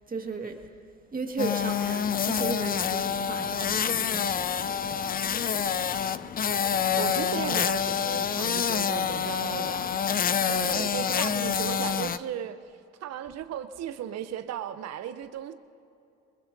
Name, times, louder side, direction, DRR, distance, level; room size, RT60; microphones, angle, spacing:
voice 1, 0.1-0.6 1.1-5.0 7.4-7.5, right 4 dB, 25° right, 3 dB, 1.8 m, -35 dB
sound 1, 1.4-12.2, left 7 dB, 25° left, 0.5 m, -27 dB
voice 2, 7.0-10.0 10.5-12.6 13.0-15.5, right 10 dB, 45° right, 11 dB, 0.8 m, -36 dB
22.5 x 20.5 x 2.7 m, 2.6 s
hypercardioid pair, 65°, 36 cm